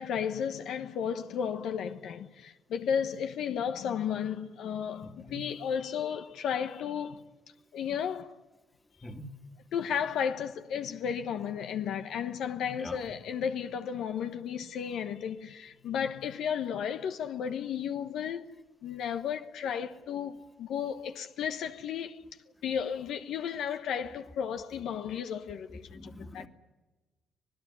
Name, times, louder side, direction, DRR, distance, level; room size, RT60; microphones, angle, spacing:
voice 1, 0.0-7.2 7.7-8.3 9.7-18.5 18.8-22.2 22.6-26.5, left 8 dB, 75° left, 1.2 m, -33 dB
voice 2, 25.9-26.5, left 1 dB, 20° left, 2.2 m, -43 dB
26.0 x 18.5 x 10.0 m
cardioid pair, 90°, 0 cm